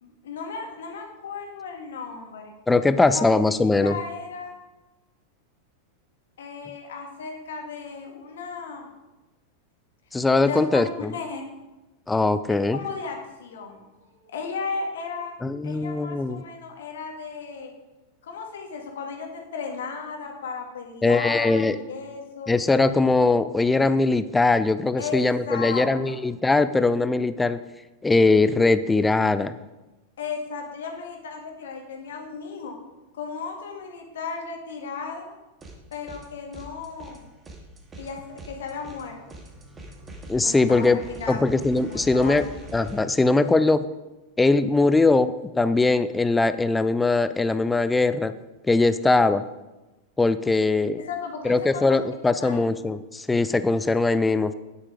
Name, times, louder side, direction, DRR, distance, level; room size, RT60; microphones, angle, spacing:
voice 1, 0.0-2.5 3.0-4.5 6.4-8.9 10.4-11.5 12.7-13.8 14.1-15.3 15.6-17.7 18.2-22.5 25.0-25.2 25.5-26.2 30.2-32.8 33.1-35.3 35.9-37.2 38.0-39.2 40.4-41.5 41.8-42.5 51.0-52.0 52.4-52.6, left 5 dB, 60° left, 3 dB, 1.8 m, -35 dB
voice 2, 2.7-4.0 10.1-11.1 12.1-12.8 15.4-16.4 21.0-21.8 22.5-27.6 28.0-29.5 40.3-41.0 41.3-43.8 44.4-48.3 48.6-49.4 50.2-51.0 51.4-54.5, left 3 dB, 10° left, 13 dB, 0.4 m, -21 dB
sound 1, 35.6-36.3 36.5-43.0, right 1 dB, 20° right, 2.0 m, -43 dB
9.9 x 8.2 x 5.0 m, 1.1 s
figure-of-eight pair, 90°, 0 cm